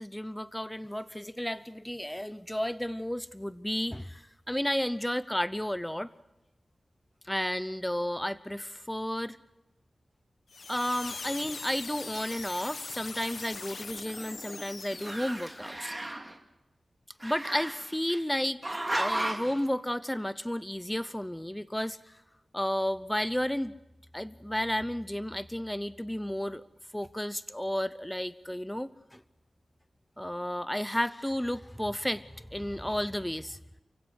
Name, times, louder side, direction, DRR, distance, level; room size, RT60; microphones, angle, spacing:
voice 1, 0.0-6.1 7.2-9.4 10.7-16.0 17.2-18.6 19.0-22.0 22.5-23.7 24.1-26.6 26.9-29.2 30.2-33.6, equal, 5° left, 15 dB, 0.7 m, -32 dB
sound 1, 10.5-15.7, left 4 dB, 65° left, 1.3 m, -41 dB
Growling, 13.4-14.6 14.9-16.3 17.2-18.2 18.6-19.6, right 1 dB, 15° right, 2.7 m, -35 dB
29.5 x 16.0 x 8.0 m, 0.96 s
wide cardioid pair, 80°, 0 cm